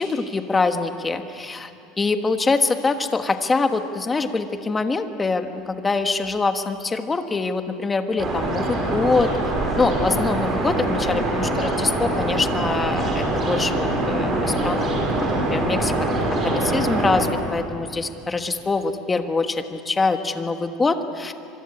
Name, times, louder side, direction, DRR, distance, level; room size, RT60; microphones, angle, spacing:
voice 1, 0.0-1.7 2.0-9.3 9.8-15.0 15.5-15.9 16.4-21.3, left 3 dB, 15° left, 7 dB, 1.3 m, -24 dB
sound 1, 8.2-17.3, right 2 dB, 30° right, 5.6 m, -23 dB
25.5 x 24.0 x 9.8 m, 2.9 s
cardioid pair, 165°, 0 cm